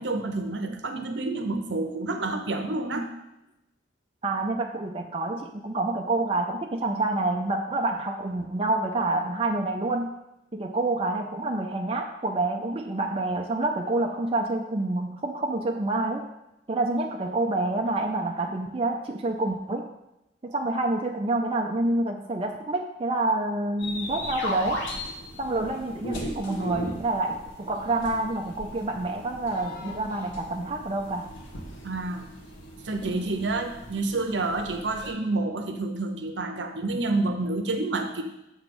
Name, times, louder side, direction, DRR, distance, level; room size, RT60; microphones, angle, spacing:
voice 1, 0.0-3.1 31.8-32.3 32.8-38.2, right 2 dB, 70° right, 6 dB, 0.8 m, -29 dB
voice 2, 4.2-10.1 10.5-16.3 16.7-19.9 20.4-24.8 25.4-31.3, right 2 dB, 30° right, 2 dB, 0.4 m, -28 dB
sound 1, 23.8-35.1, left 1 dB, 80° left, 1.4 m, -38 dB
6.9 x 3.4 x 6.0 m, 0.91 s
head